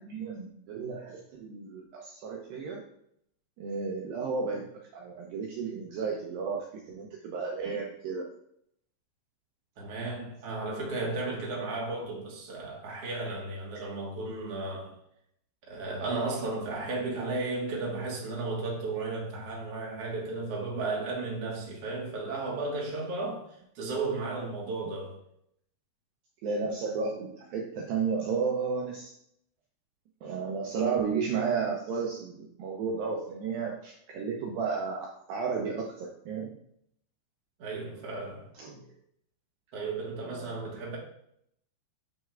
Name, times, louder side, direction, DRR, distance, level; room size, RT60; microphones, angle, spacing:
voice 1, 0.0-2.9 3.6-8.3 26.4-29.1 30.2-36.6 38.6-38.9 40.3-40.7, right 5 dB, 75° right, 2.3 m, -33 dB
voice 2, 9.8-15.0 15.7-23.5 23.8-25.2 30.5-30.6 37.6-38.5 39.7-41.0, right 3 dB, 50° right, 2.0 m, -34 dB
7.4 x 6.1 x 2.4 m
omnidirectional pair, 4.5 m